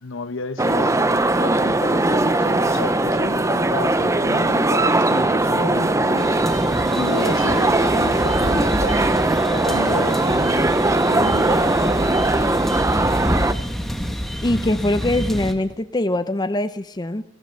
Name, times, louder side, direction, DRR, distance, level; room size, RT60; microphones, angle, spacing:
voice 1, 0.0-9.1 9.5-10.7 11.0-12.0, left 3 dB, 75° left, 1.0 m, -32 dB
sound 1, 0.6-13.5, right 2 dB, 15° right, 0.7 m, -19 dB
sound 2, 6.2-15.5, equal, ahead, 1.5 m, -28 dB
voice 2, 14.4-17.2, left 1 dB, 20° left, 0.7 m, -22 dB
29.5 x 14.5 x 6.7 m
head